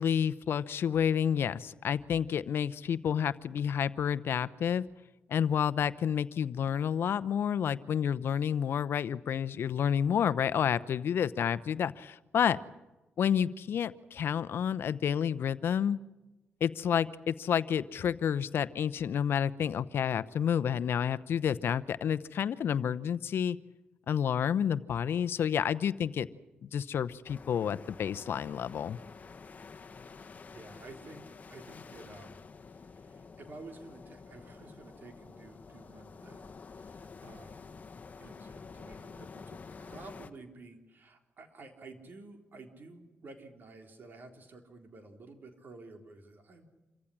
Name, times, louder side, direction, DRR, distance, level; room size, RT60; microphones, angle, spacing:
voice 1, 0.0-4.8 5.3-12.6 13.2-16.0 16.6-23.6 24.1-26.3 26.6-29.0, left 8 dB, 70° left, 15 dB, 0.8 m, -30 dB
sound 1, 27.2-40.3, left 5 dB, 40° left, 1.3 m, -49 dB
voice 2, 30.5-32.4 32.7-37.7 38.2-46.7, right 3 dB, 55° right, 5 dB, 3.8 m, -51 dB
27.0 x 15.0 x 10.0 m, 1.1 s
cardioid pair, 75°, 4 cm